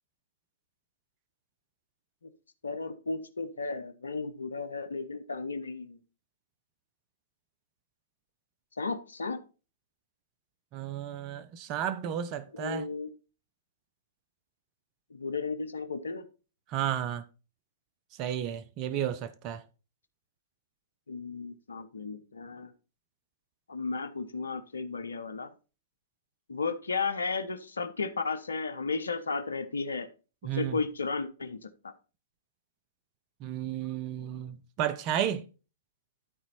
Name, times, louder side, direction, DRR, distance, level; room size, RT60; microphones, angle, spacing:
voice 1, 2.6-6.0 8.8-9.4 12.5-13.1 15.1-16.2 21.1-22.7 23.7-25.5 26.5-30.1 30.5-31.9, left 4 dB, 85° left, 0.9 m, -34 dB
voice 2, 10.7-12.9 16.7-17.2 18.2-19.6 30.4-30.8 33.4-35.4, right 10 dB, 40° right, 0.8 m, -32 dB
12.5 x 4.3 x 4.2 m
hypercardioid pair, 115°, 0 cm